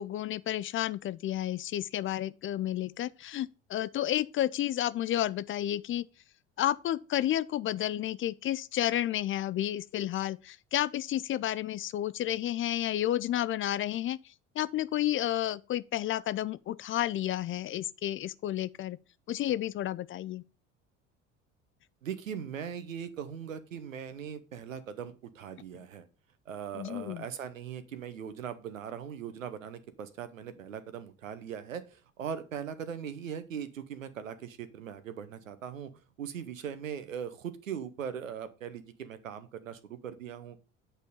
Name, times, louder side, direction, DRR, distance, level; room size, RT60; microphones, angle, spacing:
voice 1, 0.0-6.0 6.6-14.2 14.6-19.0 19.3-20.4 26.7-27.2, left 12 dB, 35° left, 0.4 m, -31 dB
voice 2, 22.0-26.1 26.5-35.9 36.2-40.6, right 8 dB, 90° right, 0.8 m, -40 dB
8.1 x 4.4 x 5.2 m
hypercardioid pair, 65°, 38 cm